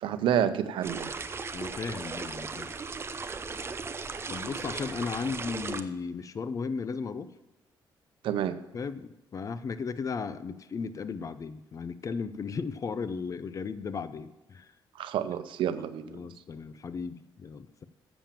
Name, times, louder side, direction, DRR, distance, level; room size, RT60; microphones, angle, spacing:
voice 1, 0.0-1.1 8.2-8.6 15.0-16.2, right 9 dB, 85° right, 11 dB, 0.7 m, -29 dB
sound 1, 0.8-5.8, right 4 dB, 30° right, 0.6 m, -37 dB
voice 2, 1.5-2.7 4.3-7.3 8.7-14.7 16.1-17.8, left 5 dB, 40° left, 13 dB, 0.5 m, -35 dB
7.4 x 7.1 x 7.3 m, 1.0 s
cardioid pair, 105°, 8 cm